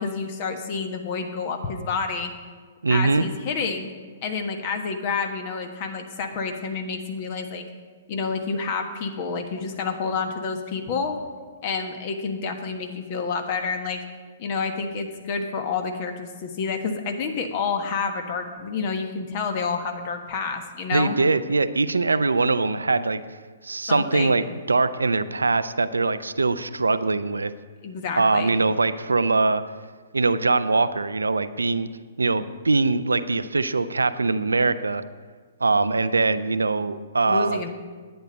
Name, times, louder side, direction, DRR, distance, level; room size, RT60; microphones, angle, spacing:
voice 1, 0.0-2.3 2.9-3.9 4.2-7.6 8.1-11.2 11.6-14.0 14.4-21.2 23.9-24.3 27.8-28.5 37.2-37.7, left 5 dB, 45° left, 5 dB, 1.4 m, -29 dB
voice 2, 2.8-3.2 20.9-23.2 23.6-27.5 28.2-29.6 30.1-31.9 32.2-35.0 35.6-37.7, right 3 dB, 85° right, 12 dB, 0.5 m, -22 dB
11.0 x 9.2 x 5.3 m, 1.5 s
figure-of-eight pair, 120°, 0 cm